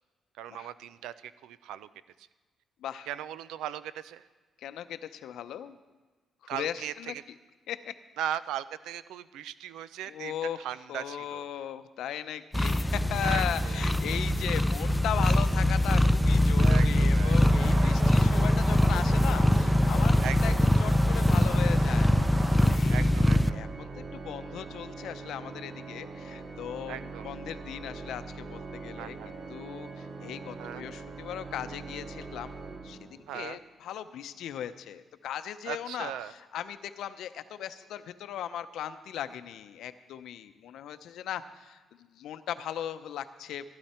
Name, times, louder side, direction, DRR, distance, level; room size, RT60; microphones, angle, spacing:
voice 1, 0.4-1.9 2.2-2.3 3.1-4.3 6.5-7.2 8.2-11.5 13.2-14.2 16.6-18.3 20.2-20.6 22.9-23.6 26.9-27.3 29.0-29.3 30.6-30.8 33.3-33.6 35.7-36.3, right 10 dB, 90° right, 15 dB, 0.5 m, -38 dB
voice 2, 4.6-5.8 6.4-7.2 7.7-7.9 10.1-10.6 10.9-23.2 23.5-29.2 29.5-32.5 32.8-43.7, left 10 dB, 80° left, 11 dB, 0.7 m, -38 dB
sound 1, 12.5-23.5, left 1 dB, 5° left, 0.5 m, -23 dB
sound 2, 17.4-22.8, right 2 dB, 30° right, 1.3 m, -36 dB
Organ, 22.8-33.5, right 3 dB, 50° right, 1.8 m, -42 dB
15.5 x 11.5 x 4.4 m, 1.4 s
cardioid pair, 90°, 0 cm